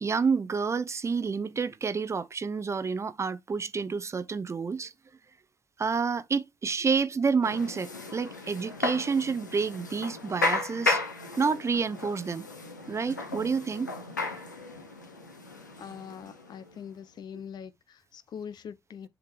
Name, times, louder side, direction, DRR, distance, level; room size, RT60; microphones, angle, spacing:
voice 1, 0.0-4.9 5.8-11.0 11.4-12.5 12.9-13.9, right 5 dB, 30° right, 0.7 m, -29 dB
sound 1, 7.4-16.8, left 3 dB, 85° left, 0.8 m, -34 dB
voice 2, 15.8-19.1, left 7 dB, 50° left, 0.6 m, -43 dB
10.5 x 3.7 x 3.2 m
figure-of-eight pair, 45°, 9 cm